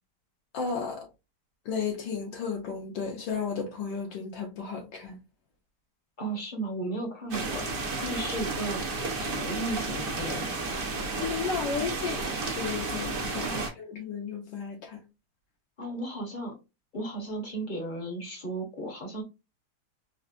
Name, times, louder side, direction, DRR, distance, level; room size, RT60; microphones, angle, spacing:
voice 1, 0.5-1.1 1.7-5.2 11.2-13.2 13.4-15.0, left 6 dB, 70° left, 1.3 m, -34 dB
voice 2, 6.2-7.6 8.0-8.8 9.2-10.8 13.2-13.7 15.8-16.5 16.9-19.2, right 2 dB, 35° left, 0.8 m, -35 dB
sound 1, 7.3-13.7, right 3 dB, 80° right, 0.4 m, -32 dB
4.3 x 2.5 x 2.5 m
omnidirectional pair, 2.3 m